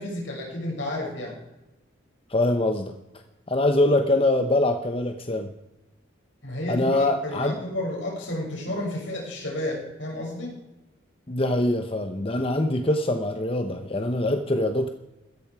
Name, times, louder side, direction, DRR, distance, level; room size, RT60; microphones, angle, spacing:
voice 1, 0.0-1.4 6.4-10.6, left 1 dB, 70° left, -2 dB, 6.6 m, -31 dB
voice 2, 2.3-2.9 3.5-5.5 6.7-7.7 11.3-14.9, left 1 dB, 30° left, 6 dB, 0.9 m, -23 dB
16.5 x 14.0 x 4.8 m, 0.98 s
head